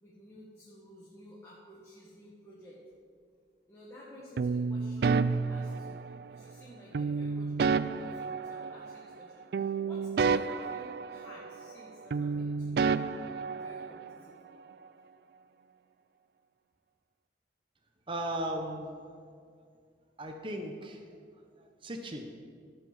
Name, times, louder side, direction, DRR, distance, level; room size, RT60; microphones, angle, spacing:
voice 1, 0.0-2.8 3.7-6.0 6.3-14.4, equal, 15° left, -7 dB, 1.5 m, -53 dB
sound 1, 4.4-6.4 6.9-9.3 9.5-11.8 12.1-14.2, right 5 dB, 60° right, 0.3 m, -31 dB
voice 2, 18.1-19.2 20.2-21.0 21.6-22.3, right 1 dB, 30° right, 3 dB, 0.9 m, -37 dB
13.0 x 5.7 x 7.4 m, 2.1 s
head